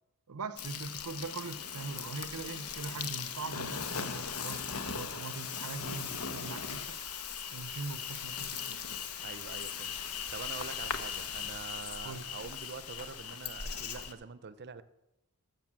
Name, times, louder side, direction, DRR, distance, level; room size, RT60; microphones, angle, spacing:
voice 1, 0.3-7.0 7.4-8.8 12.0-12.3, right 4 dB, 85° right, 0.7 m, -42 dB
Insect, 0.6-14.1, left 7 dB, 80° left, 1.1 m, -39 dB
voice 2, 9.2-9.9 10.3-14.8, right 5 dB, 50° right, 0.6 m, -45 dB
14.0 x 6.9 x 7.5 m
head